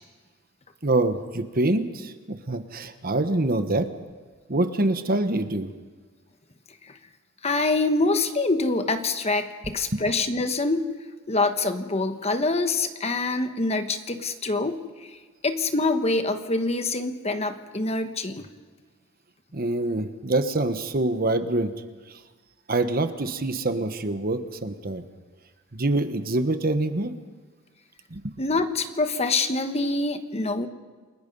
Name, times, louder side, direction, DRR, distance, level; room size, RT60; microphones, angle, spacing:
voice 1, 0.8-3.9 4.5-5.7 9.9-10.0 19.5-21.7 22.7-25.0 25.7-27.1 28.1-28.3, right 2 dB, 45° right, 9 dB, 1.2 m, -25 dB
voice 2, 7.4-10.9 11.3-15.2 15.4-18.4 28.4-30.7, left 3 dB, 30° left, 8 dB, 1.2 m, -25 dB
28.5 x 19.5 x 5.4 m, 1.4 s
head